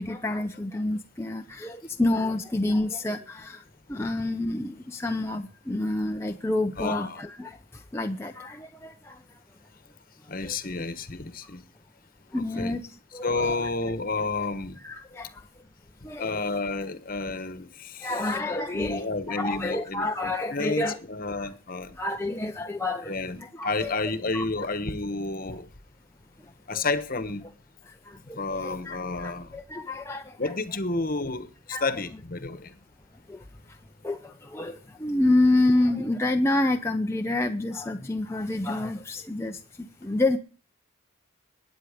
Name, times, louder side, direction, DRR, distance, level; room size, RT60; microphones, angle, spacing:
voice 1, 0.0-3.6 3.9-7.6 7.9-9.2 10.4-10.5 12.3-12.9 13.1-13.7 14.8-15.3 16.0-16.4 18.0-21.0 21.4-21.5 22.0-23.1 23.4-23.9 24.3-24.7 28.1-30.5 31.7-31.9 33.3-33.4 34.0-40.4, left 2 dB, 15° left, 0.7 m, -28 dB
voice 2, 6.8-7.2 10.3-11.6 12.3-12.8 13.2-14.8 16.2-18.3 18.7-21.9 23.1-25.7 26.7-27.4 28.3-29.5 30.4-32.7, left 3 dB, 45° left, 1.2 m, -31 dB
21.5 x 9.2 x 5.1 m
head